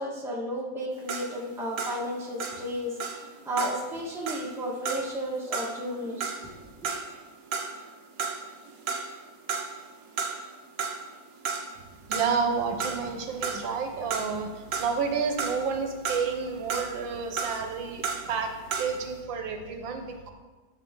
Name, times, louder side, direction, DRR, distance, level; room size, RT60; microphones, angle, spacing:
voice 1, 0.0-6.6, equal, ahead, -3 dB, 1.1 m, -33 dB
sound 1, 0.9-7.9 8.2-9.2 9.5-10.5 10.8-19.1, right 5 dB, 55° right, 1.2 m, -34 dB
voice 2, 12.1-20.3, right 5 dB, 75° right, 5 dB, 1.6 m, -30 dB
11.0 x 6.6 x 3.7 m, 1.3 s
omnidirectional pair, 2.1 m